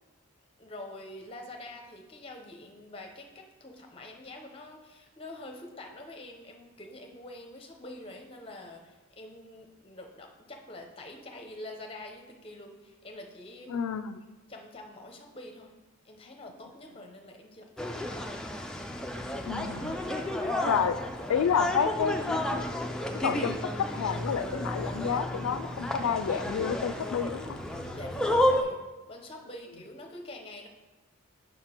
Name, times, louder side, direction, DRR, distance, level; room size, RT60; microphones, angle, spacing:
voice 1, 0.6-13.8 14.5-15.7 16.0-18.5 27.9-28.8 29.1-30.7, left 1 dB, 25° left, 3 dB, 0.7 m, -45 dB
voice 2, 13.7-14.2 19.5-20.0 20.7-21.0 21.3-22.6 23.2-27.6, left 7 dB, 90° left, 12 dB, 0.3 m, -29 dB
sound 1, 17.8-28.6, left 1 dB, 5° left, 0.3 m, -31 dB
5.9 x 5.4 x 4.4 m, 1.2 s
head